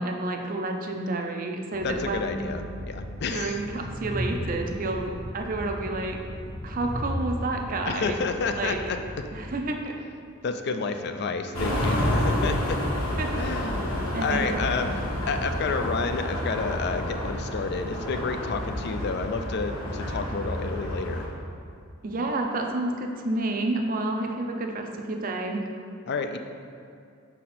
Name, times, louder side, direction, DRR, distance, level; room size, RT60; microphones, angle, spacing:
voice 1, 0.0-2.5 3.3-6.2 6.6-8.2 8.6-8.8 9.3-10.0 12.6-12.9 13.2-13.3 14.1-14.9 22.0-25.7, right 2 dB, 40° right, 3 dB, 0.5 m, -30 dB
Train, 1.7-9.6, equal, 5° left, 0.6 m, -36 dB
voice 2, 1.8-3.6 7.9-9.0 10.4-12.8 13.3-21.2 26.1-26.4, left 4 dB, 50° left, 7 dB, 0.4 m, -30 dB
sound 1, 11.5-21.3, equal, 75° left, 1.5 m, -29 dB
6.3 x 4.2 x 4.2 m, 2.4 s
head